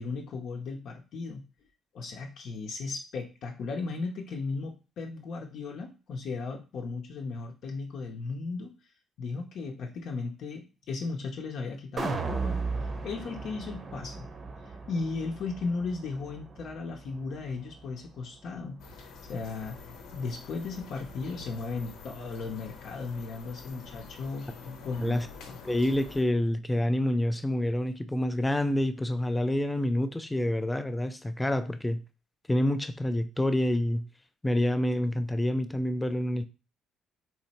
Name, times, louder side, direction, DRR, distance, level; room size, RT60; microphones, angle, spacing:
voice 1, 0.0-1.4 1.9-8.7 9.2-12.6 13.0-14.3 14.9-24.5 24.8-25.2 25.5-25.6, left 4 dB, 60° left, 0.8 m, -36 dB
sound 1, 12.0-18.2 18.6-18.7, right 4 dB, 35° right, 0.7 m, -36 dB
sound 2, 18.8-26.2, left 4 dB, 85° left, 1.0 m, -47 dB
voice 2, 25.6-32.0 32.5-34.1 34.4-36.5, left 1 dB, 10° left, 0.4 m, -27 dB
4.1 x 3.1 x 4.2 m
cardioid pair, 130°, 0 cm